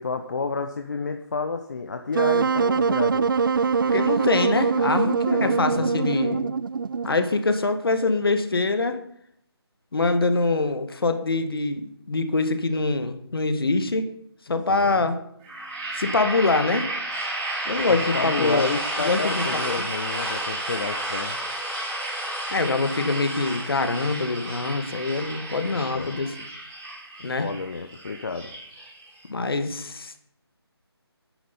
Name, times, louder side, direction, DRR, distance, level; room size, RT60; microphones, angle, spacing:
voice 1, 0.0-3.3 5.0-6.6 14.7-15.0 17.8-21.4 25.7-26.2 27.4-28.5, left 4 dB, 45° left, 6 dB, 0.9 m, -31 dB
Wind instrument woodwind instrument, 2.1-7.2, right 5 dB, 55° right, 0.4 m, -23 dB
voice 2, 3.9-6.4 7.0-9.0 9.9-14.1 14.5-15.2 16.0-16.9 17.7-18.7 19.0-19.9 22.5-26.3 27.2-27.5 29.3-30.2, left 3 dB, 60° left, 8 dB, 1.9 m, -24 dB
sound 1, 15.4-29.2, right 1 dB, 15° right, 3.7 m, -32 dB
10.0 x 10.0 x 7.0 m, 0.71 s
figure-of-eight pair, 165°, 14 cm